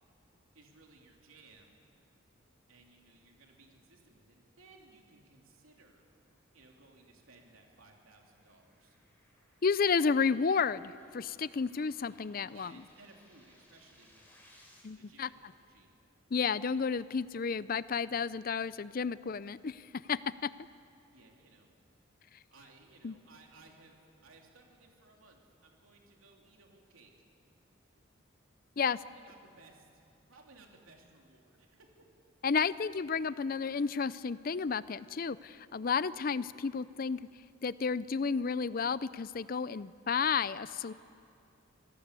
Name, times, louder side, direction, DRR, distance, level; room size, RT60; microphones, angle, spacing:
voice 1, 0.5-1.8 2.7-6.0 6.5-9.0 12.5-14.4 14.9-15.9 21.1-21.7 22.5-27.1 28.8-30.0 30.3-32.2, right 3 dB, 85° right, 1 dB, 3.2 m, -60 dB
sound 1, 6.0-14.8, left 1 dB, 10° left, 4.2 m, -66 dB
voice 2, 9.6-12.7 14.8-15.3 16.3-20.5 23.0-23.1 28.8-29.0 32.4-37.2 37.6-40.9, left 5 dB, 45° left, 17 dB, 0.5 m, -32 dB
26.0 x 17.0 x 8.2 m, 2.5 s
head